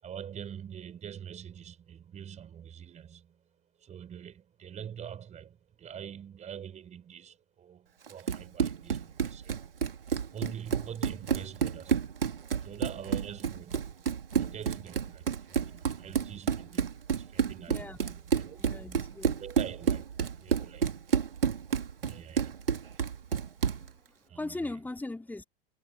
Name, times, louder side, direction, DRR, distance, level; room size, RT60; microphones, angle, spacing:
voice 1, 0.0-3.5 3.8-9.7 10.3-12.0 12.6-18.8 19.4-21.0 22.0-22.6 24.3-24.7, right 8 dB, 25° right, 5.6 m, -45 dB
Run, 8.1-23.9, right 7 dB, 70° right, 2.6 m, -30 dB
voice 2, 17.7-18.2 18.5-19.4 23.7-25.4, left 2 dB, 5° left, 4.0 m, -40 dB
figure-of-eight pair, 95°, 29 cm